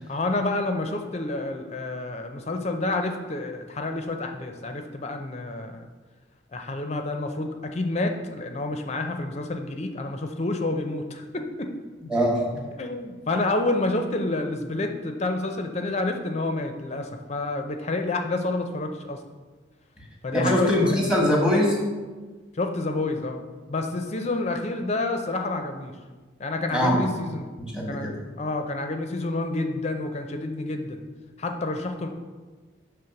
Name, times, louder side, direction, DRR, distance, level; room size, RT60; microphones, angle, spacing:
voice 1, 0.1-5.9 6.5-11.7 12.7-19.2 20.2-21.0 22.5-23.4 23.7-26.0 26.4-27.5 27.9-31.0 31.4-32.1, left 2 dB, 35° left, 5 dB, 0.5 m, -29 dB
voice 2, 12.1-12.7 20.3-21.8 26.7-27.1 27.6-28.2, equal, 5° right, -1 dB, 1.1 m, -22 dB
6.6 x 3.4 x 5.8 m, 1.4 s
head